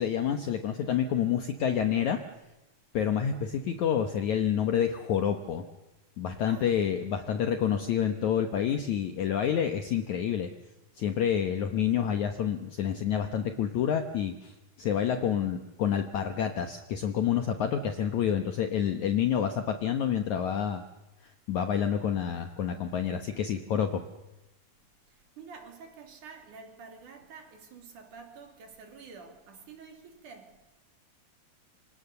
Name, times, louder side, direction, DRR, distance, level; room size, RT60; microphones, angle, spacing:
voice 1, 0.0-2.2 2.9-5.6 6.2-10.5 11.0-20.8 21.5-24.0, left 8 dB, 65° left, 2.1 m, -28 dB
voice 2, 25.1-30.6, right 5 dB, 55° right, 4.4 m, -49 dB
27.5 x 26.0 x 6.9 m
omnidirectional pair, 4.4 m